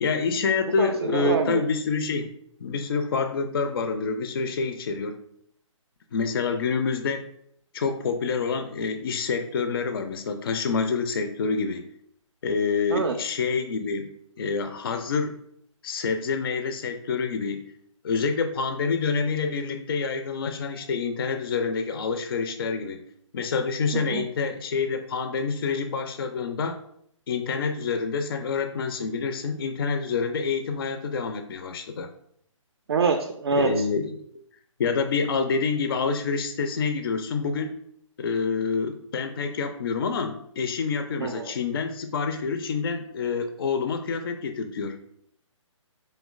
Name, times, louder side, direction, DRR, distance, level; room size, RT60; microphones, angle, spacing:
voice 1, 0.0-2.3 2.6-5.2 6.1-7.3 7.7-11.9 12.4-14.1 14.4-15.4 15.8-17.7 18.0-23.0 23.3-26.8 27.3-32.1 33.5-34.2 34.8-37.8 38.2-45.0, left 5 dB, 45° left, 8 dB, 0.4 m, -27 dB
voice 2, 0.8-1.6 12.9-13.2 23.9-24.3 32.9-33.7 41.2-41.5, right 5 dB, 50° right, 5 dB, 0.4 m, -25 dB
4.5 x 3.1 x 2.4 m, 0.69 s
figure-of-eight pair, 135°, 17 cm